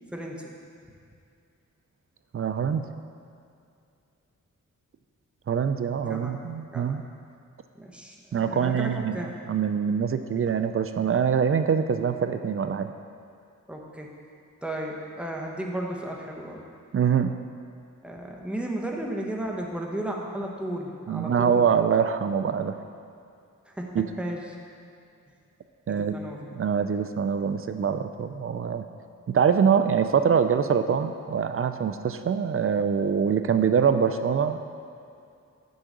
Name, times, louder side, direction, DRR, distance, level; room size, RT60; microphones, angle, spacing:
voice 1, 0.1-0.5 6.0-6.3 6.6-7.0 7.7-9.3 13.7-14.1 14.6-16.6 18.0-21.6 23.6-23.9 24.2-24.4 25.9-26.5, right 1 dB, 5° right, -1 dB, 0.9 m, -34 dB
voice 2, 2.3-2.9 5.5-7.0 8.3-9.2 9.5-12.9 16.9-17.3 21.1-22.8 24.0-24.1 25.9-26.1 26.5-28.8 29.3-34.6, right 7 dB, 45° right, 9 dB, 0.4 m, -24 dB
6.4 x 4.7 x 6.6 m, 2.5 s
wide cardioid pair, 100°, 31 cm